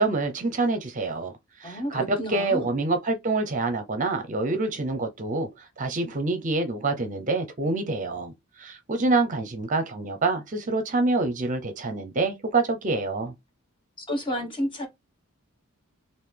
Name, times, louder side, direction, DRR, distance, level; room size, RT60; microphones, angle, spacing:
voice 1, 0.0-1.3 1.6-13.3, right 3 dB, 35° right, 0.6 m, -26 dB
voice 2, 1.6-2.7 14.0-14.9, equal, 25° left, 1.0 m, -31 dB
3.9 x 2.6 x 3.3 m
head